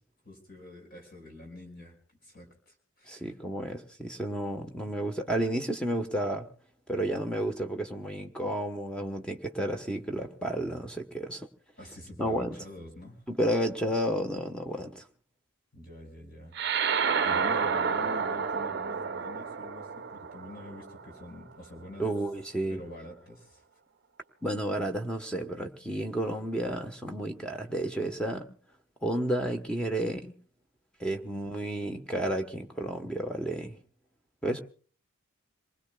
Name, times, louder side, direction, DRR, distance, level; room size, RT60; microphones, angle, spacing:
voice 1, 0.2-2.0 2.2-3.4 11.8-13.2 15.7-16.6 16.9-22.1 22.7-23.6, left 1 dB, 45° left, 5.3 m, -46 dB
voice 2, 3.1-6.5 6.9-11.5 12.2-12.5 13.3-15.0 22.0-22.8 24.4-28.5 29.0-30.3 31.0-33.7 34.4-34.6, right 1 dB, 5° left, 1.1 m, -31 dB
sound 1, 16.5-21.3, right 6 dB, 50° right, 0.7 m, -30 dB
27.5 x 20.0 x 2.3 m
head